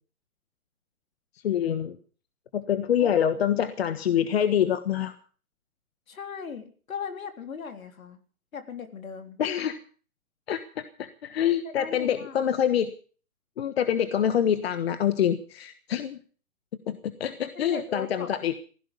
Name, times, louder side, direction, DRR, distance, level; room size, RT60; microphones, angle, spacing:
voice 1, 1.4-2.0 2.5-5.1 9.4-9.8 10.5-12.9 13.6-16.2 16.9-18.5, left 9 dB, 45° left, 11 dB, 1.4 m, -26 dB
voice 2, 3.0-3.3 6.1-8.2 8.5-9.4 11.5-12.5 17.5-18.6, left 6 dB, 70° left, 7 dB, 3.8 m, -38 dB
16.5 x 16.0 x 5.4 m, 0.41 s
hypercardioid pair, 155°, 43 cm